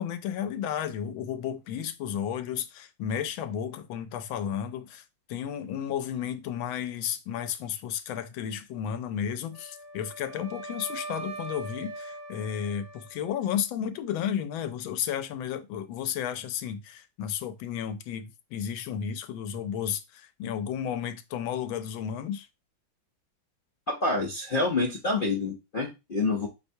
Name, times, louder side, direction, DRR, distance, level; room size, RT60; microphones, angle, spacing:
voice 1, 0.0-5.0 5.3-22.5, left 9 dB, 85° left, 1.4 m, -33 dB
Wind instrument woodwind instrument, 9.5-13.6, right 2 dB, 25° right, 1.8 m, -41 dB
voice 2, 23.9-26.5, left 3 dB, 65° left, 0.5 m, -27 dB
4.3 x 3.3 x 2.6 m
omnidirectional pair, 2.2 m